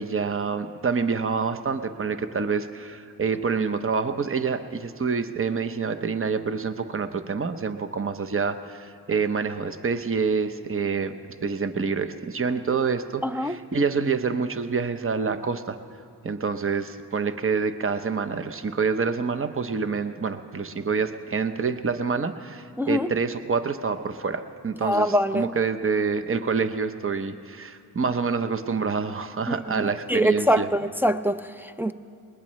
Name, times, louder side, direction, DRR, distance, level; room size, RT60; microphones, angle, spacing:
voice 1, 0.0-11.1 11.4-15.8 16.2-30.7, right 5 dB, 30° right, 0.8 m, -27 dB
voice 2, 13.2-13.6 22.8-23.1 24.8-25.4 29.5-31.9, equal, 5° right, 0.4 m, -24 dB
21.0 x 20.0 x 3.2 m
cardioid pair, 50°, 42 cm